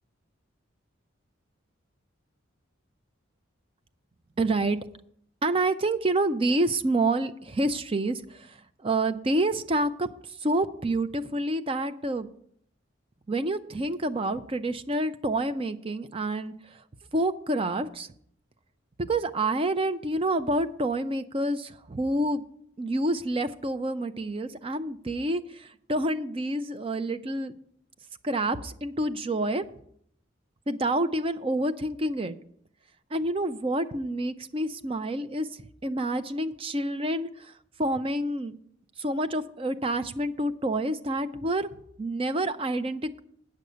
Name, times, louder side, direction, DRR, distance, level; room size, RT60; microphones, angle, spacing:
voice 1, 4.4-4.8 5.4-8.5 8.8-10.1 10.4-12.3 13.3-16.5 17.1-18.1 19.1-22.4 22.8-27.5 28.2-29.7 30.7-32.4 33.1-35.5 35.8-37.5 37.8-38.5 39.0-41.7 42.0-43.2, right 1 dB, 30° right, 9 dB, 0.5 m, -28 dB
9.3 x 6.4 x 6.7 m, 0.67 s
head